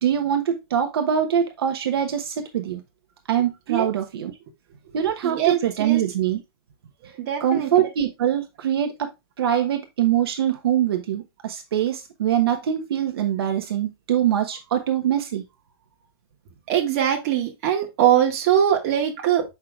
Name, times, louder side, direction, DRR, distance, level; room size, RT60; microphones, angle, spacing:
voice 1, 0.0-2.8 3.3-4.3 4.9-6.4 7.4-9.1 9.4-15.4, right 10 dB, 70° right, 1.1 m, -23 dB
voice 2, 5.2-6.0 7.2-7.7 16.7-19.4, right 10 dB, 35° right, 1.8 m, -22 dB
7.4 x 5.7 x 2.4 m
supercardioid pair, 170°, 13 cm